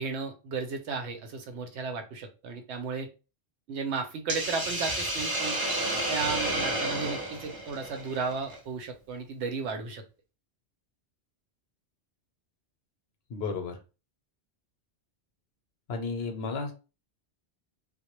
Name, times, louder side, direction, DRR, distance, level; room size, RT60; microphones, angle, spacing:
voice 1, 0.0-3.1 3.7-5.6 6.1-10.0, right 5 dB, 85° right, 4 dB, 0.9 m, -34 dB
Hiss, 4.3-8.6, right 1 dB, 30° right, 0.5 m, -31 dB
voice 2, 13.3-13.7 15.9-16.7, left 4 dB, 70° left, 5 dB, 0.8 m, -32 dB
2.2 x 2.0 x 2.9 m, 0.31 s
omnidirectional pair, 1.1 m